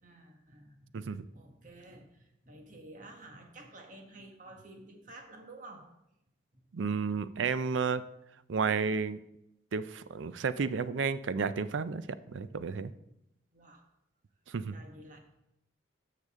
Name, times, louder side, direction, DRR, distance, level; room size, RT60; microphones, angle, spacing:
voice 1, 0.0-5.9 13.5-13.8 14.7-15.2, right 2 dB, 45° right, 3 dB, 1.5 m, -51 dB
voice 2, 0.9-1.3 6.7-8.0 8.5-9.2 9.7-12.9 14.5-14.7, right 5 dB, 85° right, 14 dB, 0.5 m, -32 dB
13.0 x 6.7 x 3.6 m, 0.85 s
head